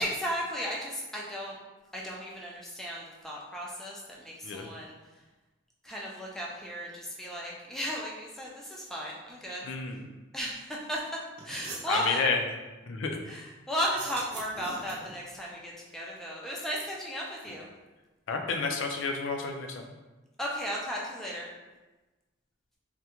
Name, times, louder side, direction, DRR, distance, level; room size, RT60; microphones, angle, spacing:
voice 1, 0.0-1.6 1.9-4.9 5.8-9.7 10.3-11.0 11.4-12.2 13.2-17.7 20.4-21.5, equal, ahead, -4 dB, 0.3 m, -35 dB
voice 2, 9.6-10.1 11.9-12.4 12.9-13.2 18.3-19.9, left 4 dB, 70° left, 3 dB, 0.4 m, -30 dB
sound 1, 11.0-11.1 11.4-11.9 13.8-15.2, right 3 dB, 55° right, 0.6 m, -41 dB
3.5 x 2.1 x 2.9 m, 1.2 s
head